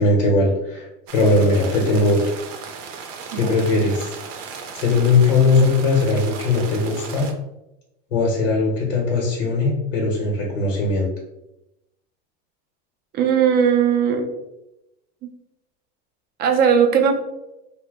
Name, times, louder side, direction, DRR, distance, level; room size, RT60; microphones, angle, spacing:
voice 1, 0.0-2.4 3.3-4.1 4.7-7.3 8.1-11.1, left 3 dB, 85° left, -2 dB, 0.9 m, -19 dB
sound 1, 1.1-7.3, right 5 dB, 80° right, 0.6 m, -36 dB
voice 2, 13.1-14.3 16.4-17.2, right 7 dB, 25° right, 4 dB, 0.4 m, -18 dB
2.7 x 2.1 x 3.4 m, 0.91 s
supercardioid pair, 125°, 37 cm